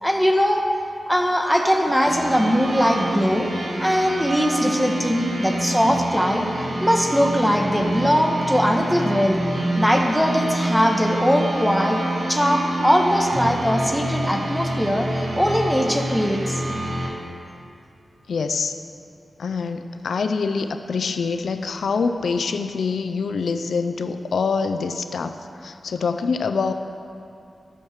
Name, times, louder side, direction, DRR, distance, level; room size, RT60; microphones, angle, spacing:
voice 1, 0.0-0.7 1.1-3.5 3.8-6.4 6.8-9.4 9.8-12.0 12.3-16.6, equal, ahead, 2 dB, 1.2 m, -20 dB
sound 1, 2.1-17.1, right 1 dB, 70° right, 2.2 m, -27 dB
voice 2, 18.3-18.8 19.4-26.7, left 5 dB, 85° left, 8 dB, 0.5 m, -25 dB
12.0 x 7.2 x 6.5 m, 2.6 s
wide cardioid pair, 100°, 0 cm